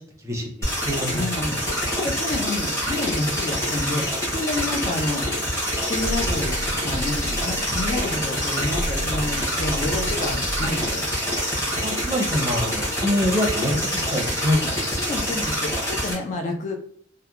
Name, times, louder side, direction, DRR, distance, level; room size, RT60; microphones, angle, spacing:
voice 1, 0.2-1.2 11.8-14.6 14.9-15.0, left 1 dB, 15° right, 0 dB, 0.6 m, -25 dB
sound 1, 0.6-16.1, equal, 15° left, 0.9 m, -26 dB
voice 2, 1.0-5.2 5.9-6.6 6.8-11.1 14.6-16.8, left 2 dB, 40° left, 3 dB, 0.4 m, -29 dB
sound 2, 6.0-8.4 8.7-11.1, right 1 dB, 90° right, 0.6 m, -31 dB
2.8 x 2.1 x 2.3 m, 0.62 s
head